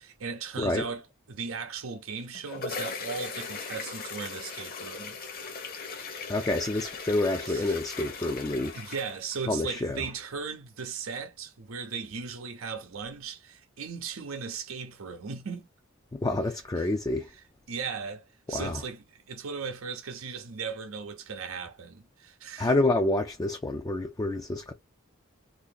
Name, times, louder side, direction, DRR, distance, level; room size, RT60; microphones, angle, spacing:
voice 1, 0.0-5.2 7.5-7.7 8.7-15.7 16.8-16.9 17.3-22.7, right 5 dB, 85° right, 0.7 m, -37 dB
sound 1, 2.1-9.6, left 4 dB, 45° left, 0.9 m, -39 dB
voice 2, 6.3-8.8 9.5-10.0 16.1-17.3 18.5-18.8 22.6-24.7, left 2 dB, 15° left, 0.4 m, -28 dB
2.8 x 2.7 x 3.8 m
head